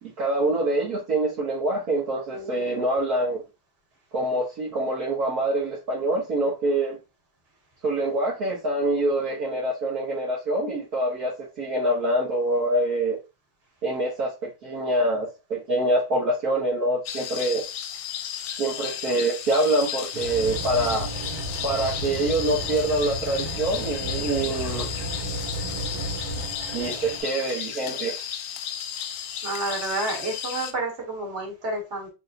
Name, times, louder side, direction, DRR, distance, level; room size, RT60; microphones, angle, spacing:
voice 1, 0.0-3.4 4.1-7.0 7.8-13.2 13.8-17.6 18.6-21.1 21.6-24.9 26.7-28.1, right 1 dB, 55° right, -6 dB, 1.6 m, -25 dB
voice 2, 2.3-2.8 29.4-32.1, right 2 dB, 40° right, -2 dB, 1.8 m, -30 dB
sound 1, 17.1-30.7, left 9 dB, 80° left, 1.3 m, -34 dB
sound 2, 20.1-27.2, right 1 dB, 80° right, 2.1 m, -33 dB
4.0 x 3.6 x 2.6 m, 0.27 s
omnidirectional pair, 2.1 m